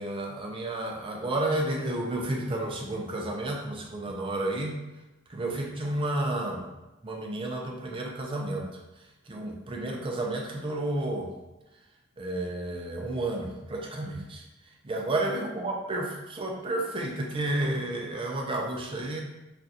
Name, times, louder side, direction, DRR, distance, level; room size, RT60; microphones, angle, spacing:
voice 1, 0.0-4.7 5.3-6.7 7.0-8.8 9.3-11.3 12.2-14.4 14.8-19.2, right 1 dB, 25° right, 0 dB, 0.4 m, -31 dB
2.5 x 2.3 x 4.0 m, 1.0 s
head